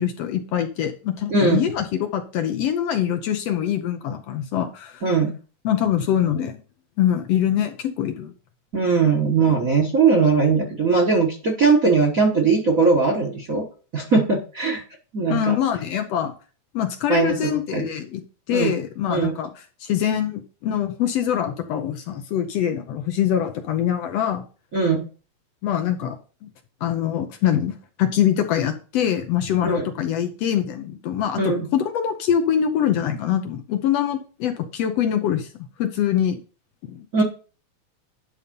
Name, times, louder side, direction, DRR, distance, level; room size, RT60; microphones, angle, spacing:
voice 1, 0.0-5.0 5.6-6.6 7.0-8.3 15.3-16.3 16.7-19.5 19.8-24.5 25.6-26.5 26.8-27.7 28.0-35.5 35.8-36.4 36.9-37.2, left 10 dB, 70° left, 6 dB, 1.8 m, -24 dB
voice 2, 1.3-1.6 5.0-5.3 8.7-13.6 13.9-14.8 15.1-15.6 17.1-17.9 18.5-18.7 19.1-19.3 24.7-25.1 29.6-29.9 31.4-31.7 37.1-37.2, right 4 dB, 40° right, 1 dB, 1.2 m, -20 dB
11.0 x 4.0 x 5.4 m, 0.36 s
omnidirectional pair, 3.3 m